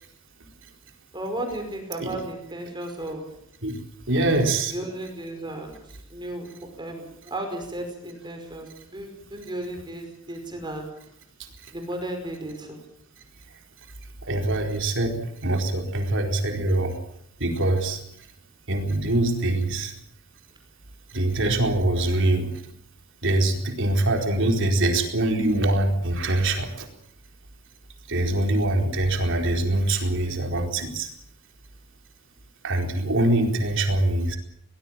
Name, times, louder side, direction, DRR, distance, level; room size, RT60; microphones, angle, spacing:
voice 1, 1.1-3.2 4.1-10.9 11.7-12.8, right 1 dB, 20° right, 4 dB, 5.3 m, -34 dB
voice 2, 4.1-4.7 14.2-17.0 17.4-18.0 18.7-19.9 21.1-22.5 23.2-26.9 28.1-31.1 32.6-34.4, right 1 dB, 60° right, 4 dB, 4.4 m, -23 dB
23.0 x 19.5 x 7.5 m, 0.72 s
head